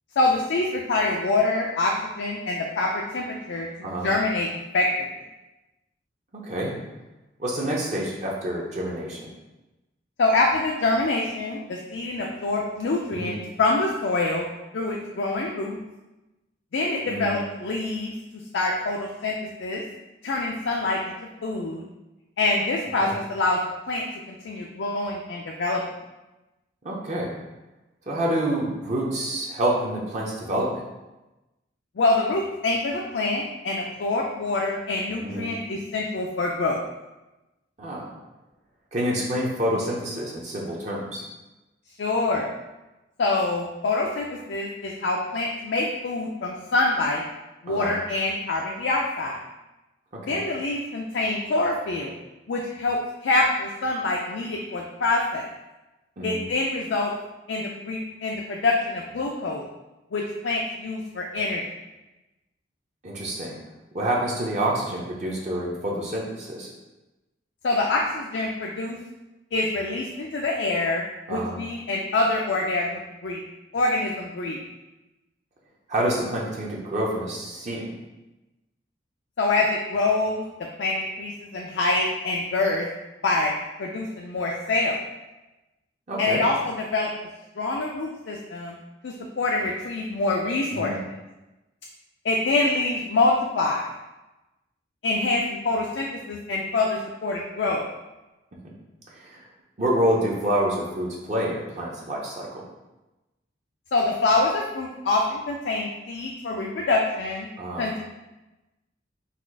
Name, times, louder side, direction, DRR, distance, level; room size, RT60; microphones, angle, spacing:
voice 1, 0.2-4.5 4.7-4.9 10.2-14.5 14.7-15.8 16.7-18.2 18.5-19.3 19.6-19.8 20.2-21.0 21.4-21.8 22.4-23.6 23.9-25.8 32.0-36.8 42.0-42.5 43.2-47.2 47.6-49.4 50.3-52.1 52.5-55.5 56.2-57.1 57.5-59.6 60.1-61.6 67.6-69.0 69.5-71.0 71.3-73.4 73.7-74.6 79.4-80.4 80.8-82.9 83.2-83.5 83.8-85.0 86.2-87.1 87.6-88.8 89.0-90.9 92.2-93.9 95.0-97.8 103.9-107.5 107.8-108.0, left 2 dB, 75° left, -1 dB, 0.4 m, -25 dB
voice 2, 6.3-6.7 7.4-9.3 13.2-13.3 17.1-17.3 23.0-23.1 26.8-27.3 28.1-30.8 35.2-35.5 37.8-38.1 38.9-41.2 47.7-48.0 50.2-50.4 56.2-56.4 63.0-63.6 63.9-66.7 71.3-71.6 75.9-77.9 86.1-86.4 90.7-91.0 99.1-99.4 99.8-102.7 107.6-107.9, right 1 dB, 40° right, -3 dB, 0.7 m, -27 dB
4.1 x 2.4 x 4.6 m, 1.0 s
head